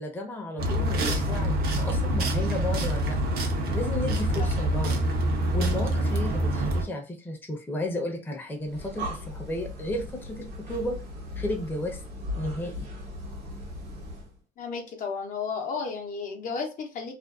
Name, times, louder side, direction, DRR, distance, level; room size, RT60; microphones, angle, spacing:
voice 1, 0.0-3.2 3.7-4.9 5.5-11.0 11.4-12.0 12.3-12.9, left 1 dB, 10° left, 1 dB, 0.6 m, -33 dB
sound 1, 0.6-6.8, right 1 dB, 65° right, 0.7 m, -26 dB
Breathing, 8.6-14.4, left 1 dB, 85° right, 0.9 m, -38 dB
voice 2, 14.6-17.2, left 5 dB, 50° left, 3 dB, 0.6 m, -33 dB
2.5 x 2.2 x 2.3 m, 0.33 s
cardioid pair, 110°, 17 cm